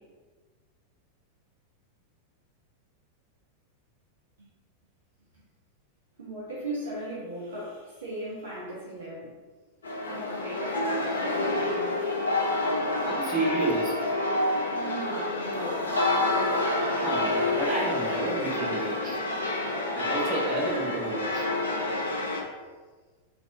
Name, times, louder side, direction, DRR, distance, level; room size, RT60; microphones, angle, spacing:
voice 1, 6.2-9.3 10.0-10.8 11.1-12.9 14.6-17.1 20.4-20.6 21.4-21.6, right 1 dB, 65° right, -7 dB, 0.8 m, -39 dB
sound 1, 9.8-22.4, left 2 dB, 70° left, 0.5 m, -28 dB
voice 2, 13.0-14.0 17.0-19.2 19.9-21.5, right 2 dB, 30° right, -7 dB, 1.3 m, -30 dB
3.3 x 2.5 x 2.6 m, 1.4 s
figure-of-eight pair, 90°, 0 cm